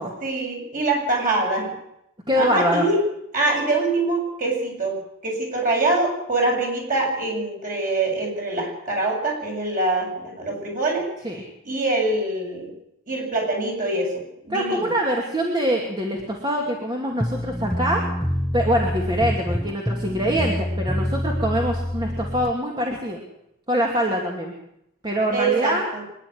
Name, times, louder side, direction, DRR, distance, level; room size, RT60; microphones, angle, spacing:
voice 1, 0.2-1.7 2.3-3.0 3.3-4.9 5.2-11.1 11.6-12.7 13.1-14.1 14.4-14.9 25.3-26.0, right 2 dB, 40° right, -1 dB, 7.5 m, -24 dB
voice 2, 2.3-2.8 11.2-11.4 14.5-18.0 18.5-23.2 23.7-24.5 25.0-25.8, equal, 20° right, -1 dB, 2.5 m, -24 dB
sound 1, 17.2-22.5, equal, 5° left, 0.6 m, -26 dB
25.0 x 11.0 x 9.7 m, 0.81 s
head